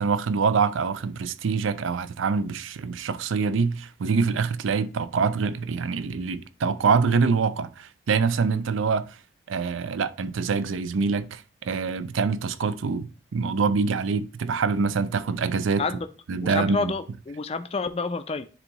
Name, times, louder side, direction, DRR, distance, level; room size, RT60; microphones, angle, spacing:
voice 1, 0.0-9.2 9.5-15.8 16.3-16.9, right 5 dB, 80° right, 0.4 m, -25 dB
voice 2, 16.4-18.5, left 3 dB, 30° left, 0.4 m, -29 dB
9.7 x 3.6 x 3.0 m
head